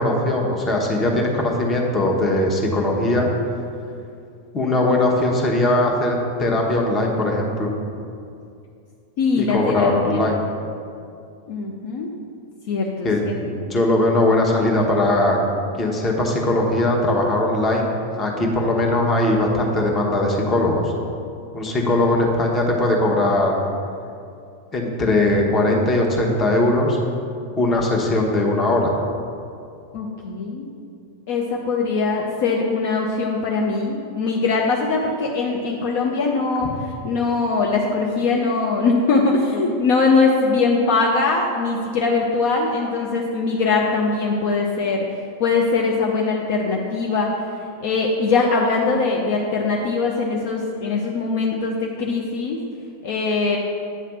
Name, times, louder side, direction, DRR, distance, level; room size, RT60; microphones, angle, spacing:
voice 1, 0.0-3.3 4.5-7.7 9.4-10.4 13.0-13.2 13.7-15.4 15.8-20.8 21.5-23.6 24.7-27.0 27.6-29.0, left 1 dB, 20° left, 0 dB, 1.1 m, -20 dB
voice 2, 9.2-10.3 11.5-12.1 12.7-13.7 29.9-30.7 31.3-36.7 37.0-45.1 45.4-47.3 47.8-52.6 53.0-53.6, left 4 dB, 50° left, -1 dB, 0.6 m, -21 dB
8.7 x 3.3 x 6.3 m, 2.5 s
figure-of-eight pair, 90°, 0 cm